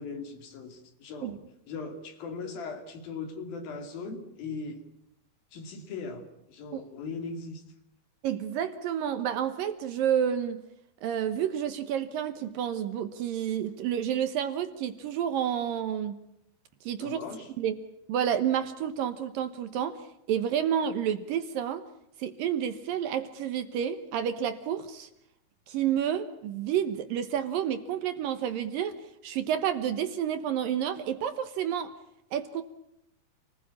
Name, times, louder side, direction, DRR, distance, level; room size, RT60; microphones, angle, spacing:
voice 1, 0.0-1.4 1.7-4.8 5.5-7.6 17.0-17.5, left 4 dB, 65° left, 6 dB, 4.4 m, -39 dB
voice 2, 8.2-10.6 11.0-16.2 16.8-17.2 17.6-17.8 18.1-21.8 22.2-25.1 25.7-31.9 32.3-32.6, right 9 dB, 70° right, 10 dB, 2.6 m, -30 dB
29.0 x 20.0 x 8.5 m, 0.78 s
omnidirectional pair, 4.6 m